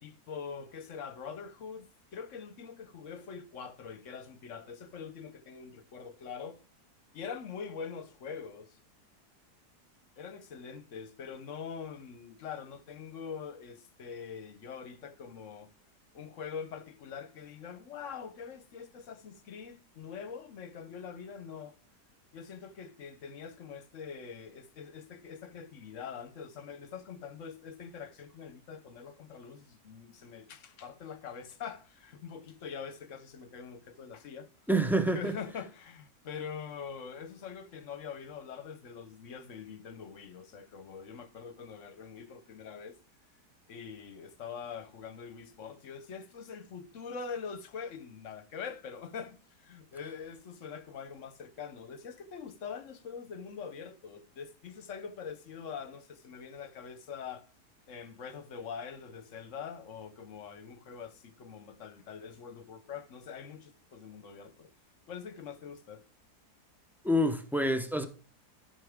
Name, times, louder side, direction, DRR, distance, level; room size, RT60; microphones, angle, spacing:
voice 1, 0.0-6.6 7.1-8.8 10.2-15.7 16.1-21.8 22.3-34.5 35.0-43.0 43.7-57.5 57.9-64.7 65.1-66.0, left 6 dB, 55° left, 1.1 m, -44 dB
voice 2, 34.7-35.3 67.0-68.1, right 1 dB, ahead, 0.4 m, -27 dB
13.0 x 6.2 x 3.5 m
omnidirectional pair, 1.7 m